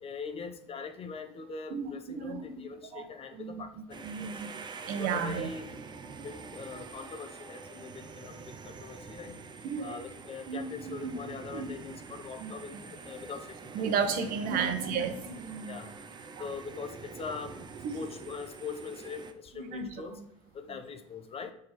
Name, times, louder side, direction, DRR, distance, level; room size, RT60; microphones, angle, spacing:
voice 1, 0.0-4.3 5.0-5.7 6.2-8.4 8.6-9.4 9.8-13.9 14.5-14.7 15.6-16.0 16.4-17.6 17.9-20.2 20.5-21.5, left 5 dB, 35° left, 7 dB, 0.9 m, -42 dB
voice 2, 1.7-2.5 2.9-3.0 3.3-4.5 4.9-5.5 9.6-10.0 10.5-11.1 11.5-11.7 12.4-12.5 13.7-15.8 16.4-16.5 17.8-18.0 19.5-19.9, right 6 dB, 55° right, 7 dB, 1.2 m, -33 dB
sound 1, 3.9-19.3, right 5 dB, 25° right, 0.7 m, -46 dB
5.9 x 4.9 x 4.3 m, 0.80 s
hypercardioid pair, 80°, 17 cm